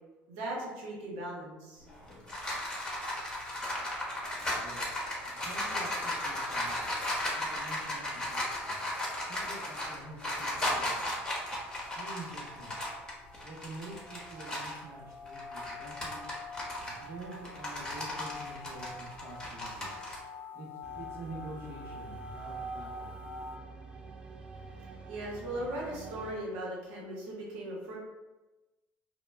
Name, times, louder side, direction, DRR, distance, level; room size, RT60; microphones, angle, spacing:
voice 1, 0.3-1.8 24.8-28.0, right 1 dB, 80° right, -4 dB, 0.9 m, -38 dB
sound 1, 1.9-14.8 15.3-20.2, left 1 dB, 15° left, 0.8 m, -35 dB
voice 2, 5.2-6.8 7.3-8.8 9.3-11.0 11.9-12.7 13.4-16.3 16.8-19.9 20.5-23.2, right 1 dB, 50° right, -3 dB, 0.8 m, -47 dB
sound 2, 7.4-23.6, left 2 dB, 45° left, 0.4 m, -47 dB
sound 3, 20.8-26.4, right 4 dB, 20° right, 0.3 m, -47 dB
2.1 x 2.1 x 3.3 m, 1.1 s
supercardioid pair, 90°, 5 cm